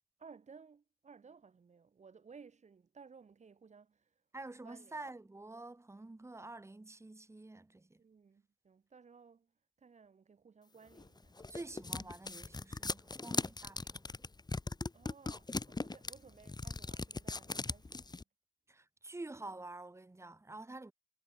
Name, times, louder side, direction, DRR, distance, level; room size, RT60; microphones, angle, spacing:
voice 1, 0.2-4.1 4.6-5.0 8.0-9.5 9.8-11.4 14.9-18.2, right 5 dB, 75° right, 6.0 m, -58 dB
voice 2, 4.3-8.0 11.5-14.1 18.7-20.9, right 2 dB, 25° right, 1.4 m, -48 dB
sound 1, 11.0-18.2, left 3 dB, 35° left, 1.6 m, -39 dB
wide cardioid pair, 70°, 12 cm